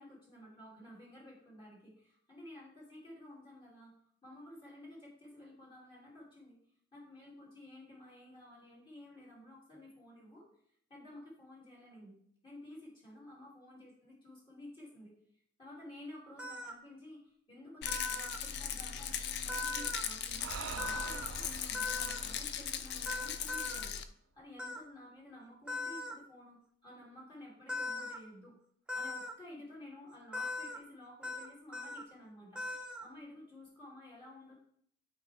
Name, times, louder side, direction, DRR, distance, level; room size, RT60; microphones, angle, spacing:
voice 1, 0.0-3.9 4.2-6.6 6.9-10.5 10.9-12.2 12.4-15.1 15.6-23.9 24.3-28.5 28.9-32.6 33.0-34.5, left 1 dB, 25° left, -6 dB, 2.6 m, -53 dB
sound 1, 16.4-16.7 17.9-18.4 19.5-20.0 20.8-21.3 21.7-22.2 23.1-23.8 24.6-24.8 25.7-26.1 27.7-28.2 28.9-29.3 30.3-30.8 31.2-31.5 31.7-32.0 32.6-33.1, left 2 dB, 5° right, 0.9 m, -39 dB
Rattle, 17.8-24.0, left 8 dB, 60° left, 0.5 m, -39 dB
Breathing, 20.3-23.8, right 6 dB, 75° right, 0.4 m, -46 dB
12.0 x 4.7 x 3.4 m, 0.66 s
head